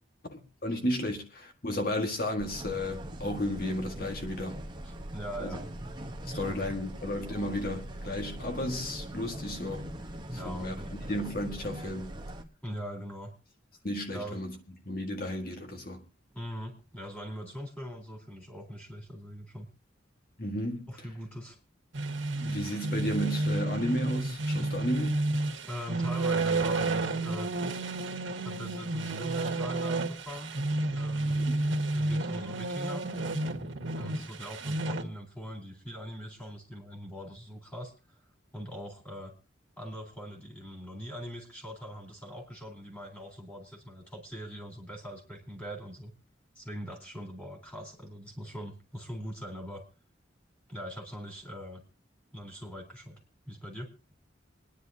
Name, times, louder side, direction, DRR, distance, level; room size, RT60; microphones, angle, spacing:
voice 1, 0.3-4.6 5.4-5.6 6.3-9.9 10.3-10.7 11.1-12.1 13.8-14.5 14.9-16.0 20.4-20.9 22.4-25.2 31.2-31.7, left 1 dB, 50° left, 1.8 m, -33 dB
sound 1, 2.4-12.4, right 1 dB, 25° right, 1.1 m, -41 dB
voice 2, 4.8-5.7 6.2-6.7 10.3-11.1 12.6-13.3 14.1-14.4 16.3-19.7 20.9-21.6 25.6-27.5 28.4-30.5 30.9-31.4 31.9-33.1 34.0-37.9 38.5-39.3 39.8-46.1 46.6-49.8 50.7-51.8 52.3-53.2 53.5-53.9, equal, 10° left, 3.9 m, -41 dB
sound 2, 21.9-35.0, right 2 dB, 85° right, 1.7 m, -31 dB
27.5 x 10.5 x 2.8 m
head